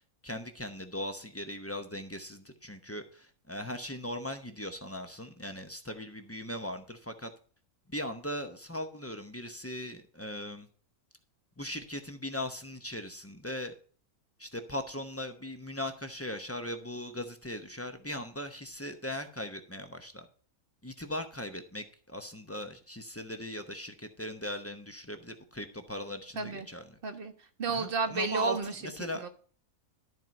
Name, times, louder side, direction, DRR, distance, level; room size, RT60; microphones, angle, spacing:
voice 1, 0.2-7.3 7.9-10.7 11.6-13.7 14.4-20.3 20.8-27.0 27.7-29.2, equal, 15° left, 6 dB, 0.7 m, -39 dB
voice 2, 26.4-26.7 27.0-28.7 29.1-29.3, right 4 dB, 40° right, 8 dB, 1.2 m, -32 dB
12.5 x 4.6 x 5.3 m, 0.43 s
omnidirectional pair, 1.5 m